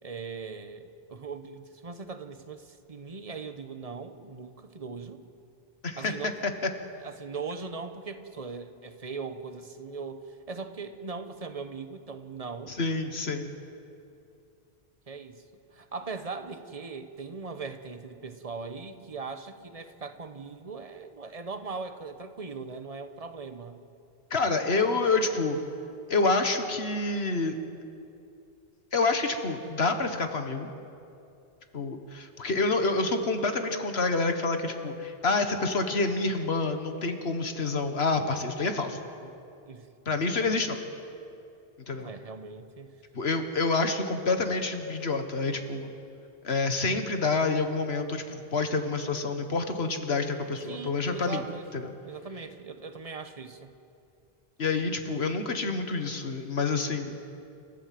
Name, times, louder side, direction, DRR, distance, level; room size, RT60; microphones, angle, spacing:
voice 1, 0.0-5.2 6.0-6.4 7.0-12.8 15.1-15.4 15.7-23.8 39.2-39.3 39.7-39.9 42.0-42.9 50.7-53.7, right 4 dB, 35° right, 9 dB, 1.1 m, -40 dB
voice 2, 12.7-13.5 24.3-25.6 26.1-27.5 28.9-30.7 31.7-39.0 40.0-40.8 41.9-42.1 43.1-45.9 46.4-51.4 51.7-51.9 54.6-57.2, left 3 dB, 75° left, 7 dB, 1.7 m, -28 dB
29.5 x 13.5 x 7.7 m, 2.7 s
omnidirectional pair, 1.1 m